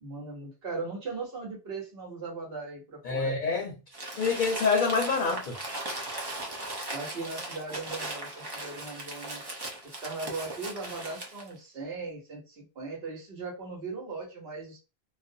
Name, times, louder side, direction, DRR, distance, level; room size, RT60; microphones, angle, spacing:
voice 1, 0.0-3.3 6.9-9.4 9.8-14.8, right 3 dB, 75° right, 1.2 m, -38 dB
voice 2, 3.0-3.8 4.2-5.6, left 4 dB, 60° left, 0.6 m, -26 dB
Crumpling crinkling, 3.9-11.5, right 2 dB, 35° right, 0.4 m, -38 dB
2.4 x 2.1 x 2.6 m
omnidirectional pair, 1.0 m